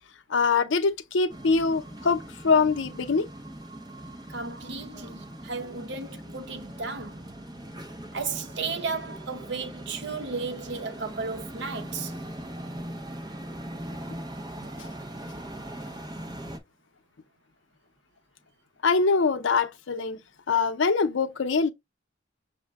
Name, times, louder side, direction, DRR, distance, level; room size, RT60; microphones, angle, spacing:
voice 1, 0.3-3.3 14.8-14.9 18.8-20.2 20.5-21.7, left 4 dB, 75° left, 0.6 m, -23 dB
sound 1, 1.3-16.6, right 1 dB, 20° right, 0.7 m, -40 dB
voice 2, 4.3-7.2 8.1-12.1, right 4 dB, 60° right, 0.8 m, -34 dB
6.4 x 2.1 x 3.4 m
head